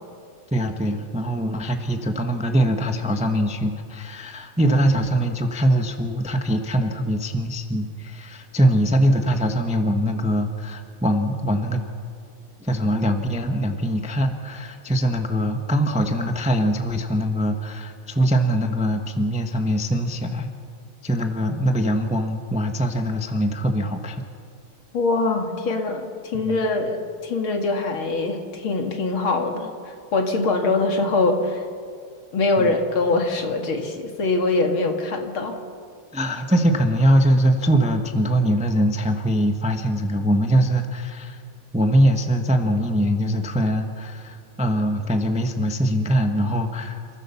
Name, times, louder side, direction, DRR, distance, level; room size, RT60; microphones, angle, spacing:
voice 1, 0.5-11.8 12.6-20.5 21.0-24.2 26.4-26.6 32.6-32.7 36.1-41.4 41.7-47.1, equal, 5° right, 5 dB, 0.8 m, -22 dB
voice 2, 24.9-27.0 27.2-31.7 32.3-35.6, left 3 dB, 75° left, 4 dB, 2.8 m, -23 dB
28.5 x 15.0 x 7.2 m, 2.2 s
omnidirectional pair, 2.3 m